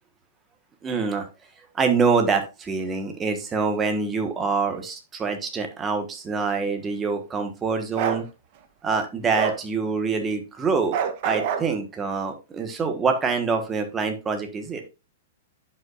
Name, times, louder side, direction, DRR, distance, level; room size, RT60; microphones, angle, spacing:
voice 1, 0.8-1.3 1.7-8.2 8.8-11.0 11.2-14.8, right 4 dB, 15° right, 5 dB, 1.3 m, -25 dB
Bark, 7.9-8.2 9.3-9.6 10.9-11.7, right 8 dB, 45° right, 0.9 m, -26 dB
10.5 x 5.6 x 2.5 m, 0.27 s
hypercardioid pair, 155°, 0 cm